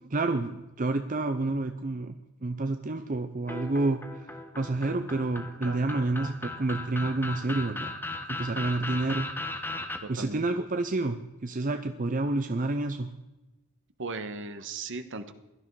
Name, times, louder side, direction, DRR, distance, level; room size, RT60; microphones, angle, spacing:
voice 1, 0.0-2.1 2.4-4.3 4.5-7.9 8.3-9.3 10.1-13.1, right 2 dB, 35° right, 7 dB, 0.7 m, -29 dB
sound 1, 3.5-10.0, left 2 dB, 10° left, 1.2 m, -37 dB
voice 2, 5.6-6.2 10.0-10.4 14.0-15.3, right 3 dB, 55° right, 9 dB, 1.3 m, -38 dB
16.5 x 12.5 x 4.7 m, 1.1 s
head